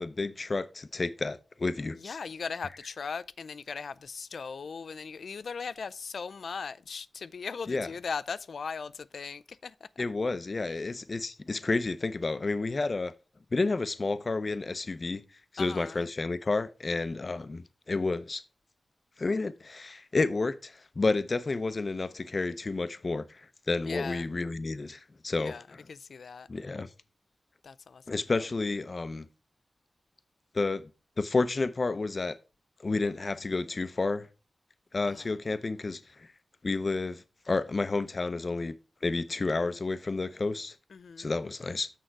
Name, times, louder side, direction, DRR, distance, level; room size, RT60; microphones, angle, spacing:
voice 1, 0.0-2.2 7.7-7.9 10.0-13.1 13.5-15.2 15.5-18.4 19.2-25.5 26.5-26.9 28.1-29.3 30.5-30.8 31.2-32.4 32.8-34.3 34.9-36.3 36.6-38.8 39.0-40.8 41.2-41.9, left 3 dB, 50° left, 0.6 m, -30 dB
voice 2, 2.0-9.7 15.6-16.0 23.9-24.3 25.4-26.5 27.6-28.2 35.1-35.3 40.9-41.3, left 5 dB, 80° left, 0.3 m, -39 dB
6.4 x 6.4 x 4.5 m
cardioid pair, 60°, 0 cm